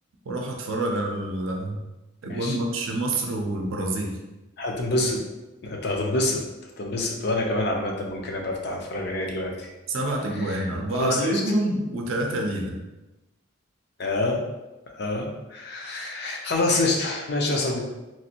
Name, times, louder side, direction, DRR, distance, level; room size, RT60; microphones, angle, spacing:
voice 1, 0.3-1.9 2.2-4.2 9.9-12.8, right 1 dB, 80° right, 2 dB, 0.5 m, -27 dB
voice 2, 4.6-5.2 5.6-9.7 10.4-10.6 10.9-11.4 14.0-14.4 14.9-17.8, left 2 dB, 55° left, 0 dB, 0.5 m, -27 dB
3.0 x 2.5 x 2.8 m, 1.0 s
head